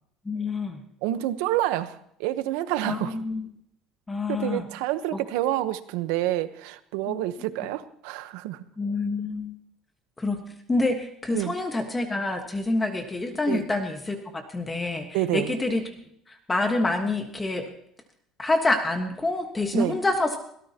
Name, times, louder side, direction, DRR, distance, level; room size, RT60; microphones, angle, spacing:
voice 1, 0.2-0.8 2.8-3.5 4.1-4.7 7.1-7.2 8.8-9.5 10.2-10.4 10.7-15.9 16.5-17.7 18.4-20.4, left 2 dB, 10° left, 5 dB, 1.4 m, -27 dB
voice 2, 1.0-3.1 4.3-8.6 11.3-11.5 13.5-13.6 15.1-15.5 19.7-20.0, right 14 dB, 90° right, 12 dB, 1.0 m, -28 dB
22.5 x 17.5 x 2.9 m, 0.70 s
cardioid pair, 155°, 0 cm